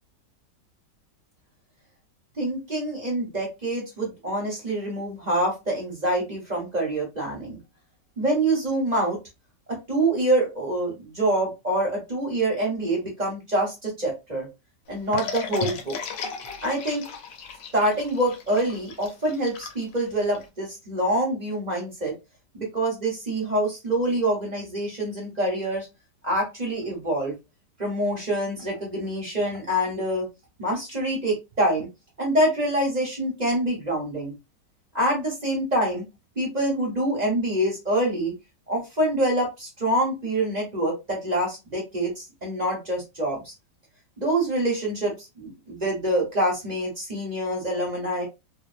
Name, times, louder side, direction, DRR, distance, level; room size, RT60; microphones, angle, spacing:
voice 1, 2.4-7.6 8.2-9.2 9.7-14.5 14.9-16.0 16.6-17.0 17.7-22.1 22.5-25.9 26.2-27.3 27.8-30.3 30.6-31.9 32.2-34.3 34.9-36.1 36.4-38.3 38.7-43.5 44.2-48.2, right 1 dB, 40° right, -1 dB, 0.6 m, -26 dB
sound 1, 15.1-20.4, left 6 dB, 90° left, 1.4 m, -35 dB
2.8 x 2.1 x 2.3 m, 0.24 s
omnidirectional pair, 1.9 m